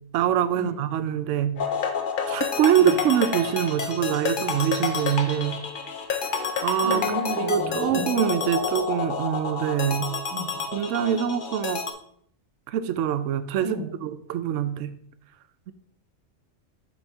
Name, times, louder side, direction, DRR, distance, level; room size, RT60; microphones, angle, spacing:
voice 1, 0.1-1.6 2.3-5.6 6.6-7.0 7.4-10.1 10.7-11.9 12.7-14.9, right 9 dB, 70° right, 12 dB, 0.9 m, -24 dB
sound 1, 1.6-11.9, left 5 dB, 45° left, 0.8 m, -29 dB
voice 2, 6.8-8.0 10.3-10.5 13.6-13.9, right 1 dB, 55° right, -6 dB, 3.2 m, -32 dB
10.5 x 4.3 x 3.5 m, 0.64 s
omnidirectional pair, 1.4 m